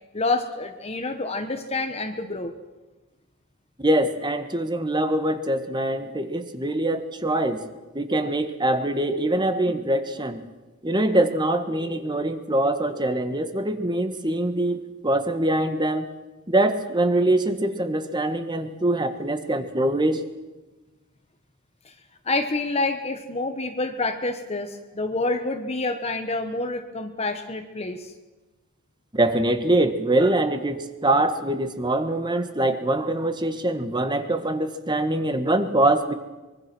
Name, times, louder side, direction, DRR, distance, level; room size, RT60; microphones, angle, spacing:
voice 1, 0.1-2.5 21.8-21.9 22.2-28.1, left 2 dB, 30° left, 6 dB, 1.3 m, -28 dB
voice 2, 3.8-7.6 7.9-10.4 10.8-16.1 16.5-20.2 29.1-36.1, right 1 dB, 20° right, 8 dB, 1.6 m, -23 dB
24.5 x 23.0 x 6.3 m, 1.2 s
head